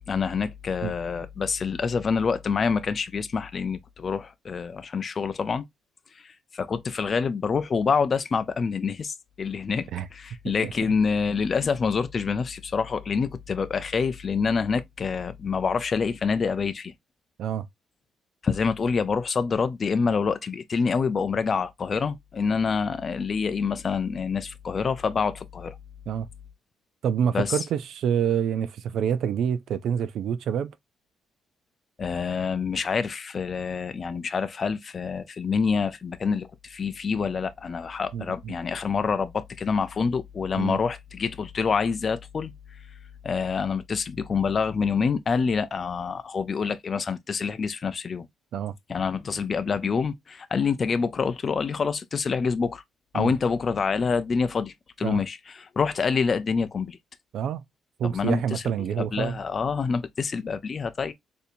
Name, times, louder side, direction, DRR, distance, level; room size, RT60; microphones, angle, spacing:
voice 1, 0.1-5.6 6.1-16.9 18.4-25.8 27.3-27.6 32.0-42.8 43.2-48.3 48.9-52.8 53.1-57.0 58.0-58.6 59.0-61.1, left 5 dB, 40° left, 0.4 m, -27 dB
voice 2, 27.0-30.8 38.1-38.5 40.6-40.8 48.5-48.8 53.1-53.3 55.0-55.2 57.3-57.6 58.0-59.4, right 8 dB, 70° right, 0.3 m, -27 dB
4.2 x 2.6 x 2.6 m
cardioid pair, 90°, 0 cm